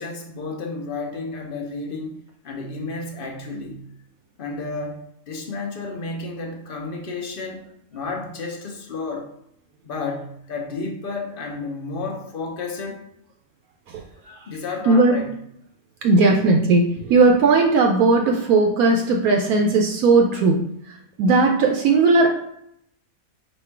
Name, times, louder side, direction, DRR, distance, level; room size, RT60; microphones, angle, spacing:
voice 1, 0.0-2.2 2.4-3.9 4.4-7.6 7.9-9.3 9.8-13.0 14.5-15.3, left 3 dB, 50° left, 1 dB, 0.7 m, -31 dB
voice 2, 13.9-14.3 14.9-15.2 16.0-20.7 21.2-22.3, right 3 dB, 80° right, 2 dB, 1.0 m, -17 dB
4.2 x 2.4 x 4.4 m, 0.73 s
omnidirectional pair, 1.5 m